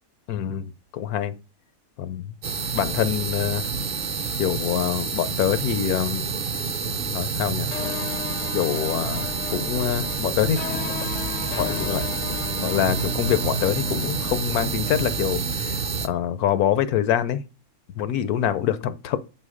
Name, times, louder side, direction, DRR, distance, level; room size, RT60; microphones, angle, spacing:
voice 1, 0.3-1.3 2.0-2.2 2.7-3.7 4.4-6.3 7.1-7.7 8.5-10.8 11.5-17.4 18.0-19.3, left 10 dB, 85° left, 1.2 m, -25 dB
sound 1, 2.4-16.1, right 5 dB, 50° right, 0.7 m, -28 dB
sound 2, 7.7-15.3, left 10 dB, 65° left, 0.8 m, -36 dB
7.8 x 5.4 x 4.9 m
omnidirectional pair, 1.5 m